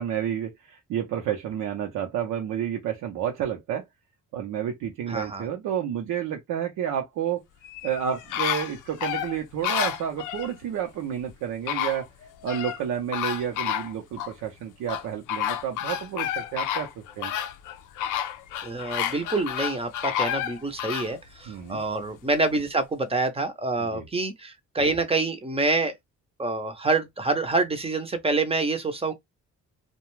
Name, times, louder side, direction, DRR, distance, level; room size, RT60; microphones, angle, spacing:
voice 1, 0.0-3.8 4.3-7.4 7.8-12.1 12.4-16.9 17.2-17.3 21.5-21.8 23.8-24.0, right 9 dB, 80° right, 0.7 m, -30 dB
voice 2, 5.1-5.5 18.6-26.0 26.4-29.1, right 3 dB, 20° right, 0.6 m, -26 dB
sound 1, 7.6-10.5 11.3-11.4 11.7-12.8 13.1-14.3 14.9-21.1 21.6-21.7, left 10 dB, 90° left, 0.5 m, -30 dB
2.3 x 2.2 x 3.0 m
cardioid pair, 90°, 30 cm